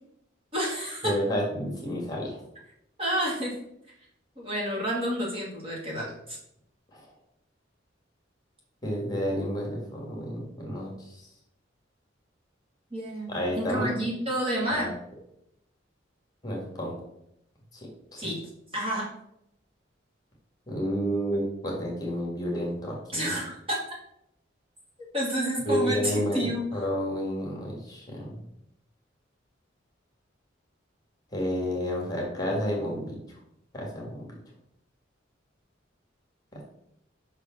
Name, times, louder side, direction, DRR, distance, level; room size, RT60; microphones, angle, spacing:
voice 1, 0.5-1.1 3.0-3.5 4.4-6.4 12.9-14.9 18.2-18.4 18.7-19.1 23.1-23.8 25.1-26.6, right 1 dB, 30° right, -5 dB, 2.3 m, -29 dB
voice 2, 1.0-2.4 6.9-7.1 8.8-11.1 13.3-13.9 14.7-14.9 16.4-16.9 18.1-18.3 20.7-23.3 25.7-28.4 31.3-33.1 33.7-34.4 36.5-36.6, equal, 20° left, -2 dB, 1.9 m, -30 dB
5.8 x 4.9 x 5.9 m, 0.77 s
head